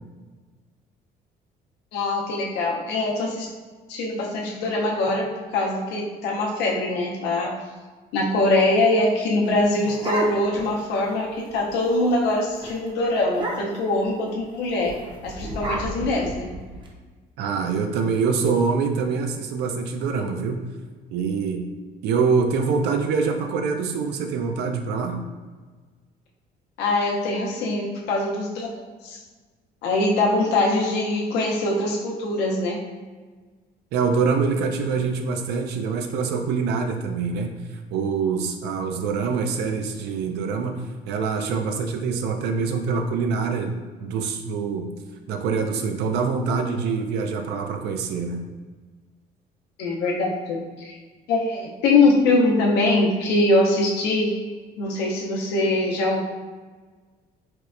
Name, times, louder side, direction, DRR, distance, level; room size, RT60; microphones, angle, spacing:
voice 1, 1.9-3.5 3.9-5.3 5.5-7.5 8.1-14.9 15.2-16.5 26.8-29.2 29.8-32.8 49.8-51.0 51.3-54.3 54.8-56.2, left 2 dB, 85° left, -2 dB, 0.6 m, -23 dB
sound 1, 9.4-10.7 11.1-11.2 11.5-11.8 12.1-12.3 12.6-12.8 13.3-13.9 14.8-16.9, right 1 dB, 30° right, 0.5 m, -31 dB
voice 2, 17.4-20.6 21.1-21.6 22.0-25.2 33.9-43.7 44.0-44.9 45.3-48.4, right 5 dB, 80° right, 5 dB, 0.4 m, -25 dB
4.3 x 2.1 x 2.4 m, 1.4 s
cardioid pair, 110°, 17 cm